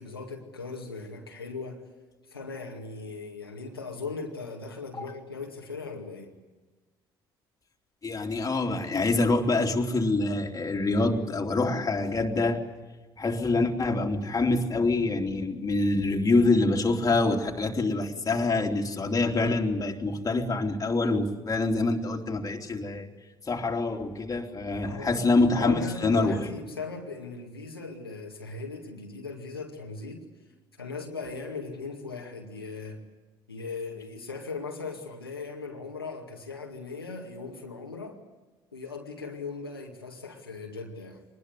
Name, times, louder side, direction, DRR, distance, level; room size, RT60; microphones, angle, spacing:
voice 1, 0.0-1.8 2.3-6.3 24.8-25.1 25.6-30.2 30.8-33.0 33.5-38.2 38.7-41.2, left 4 dB, 90° left, 1 dB, 2.2 m, -38 dB
voice 2, 8.0-12.6 13.2-23.1 23.5-26.5, left 2 dB, 30° left, 2 dB, 3.3 m, -26 dB
24.5 x 20.5 x 8.2 m, 1.2 s
figure-of-eight pair, 55°, 12 cm